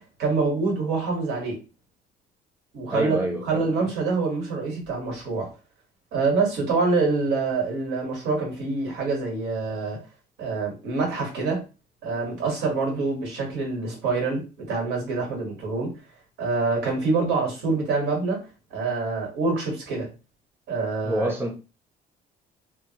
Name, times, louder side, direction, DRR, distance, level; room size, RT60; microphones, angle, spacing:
voice 1, 0.0-1.6 2.7-5.5 6.1-10.0 10.4-11.6 12.0-15.9 16.4-18.4 18.7-20.1 20.7-21.3, right 3 dB, 85° right, 1.5 m, -26 dB
voice 2, 2.9-3.9 21.0-21.5, right 1 dB, 15° right, 0.8 m, -28 dB
3.3 x 2.0 x 2.8 m
cardioid pair, 110°, 17 cm